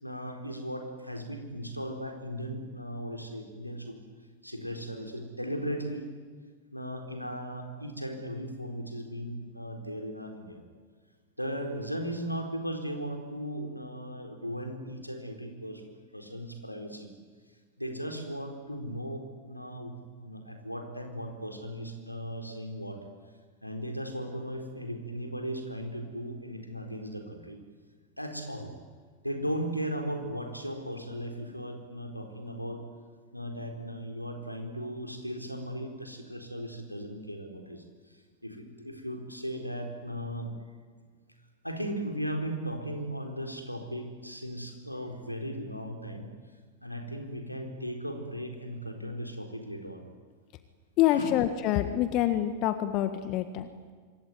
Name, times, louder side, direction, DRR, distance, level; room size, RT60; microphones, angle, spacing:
voice 1, 0.0-4.0 4.4-6.1 6.7-10.6 11.4-17.1 17.8-23.0 23.6-27.6 28.2-28.7 29.2-32.8 33.3-40.5 41.6-46.3 46.8-50.0 51.1-51.3, equal, 90° left, 4 dB, 4.2 m, -37 dB
voice 2, 51.0-53.9, left 12 dB, 40° left, 10 dB, 1.7 m, -26 dB
26.0 x 24.0 x 9.5 m, 1.6 s
figure-of-eight pair, 90°, 0 cm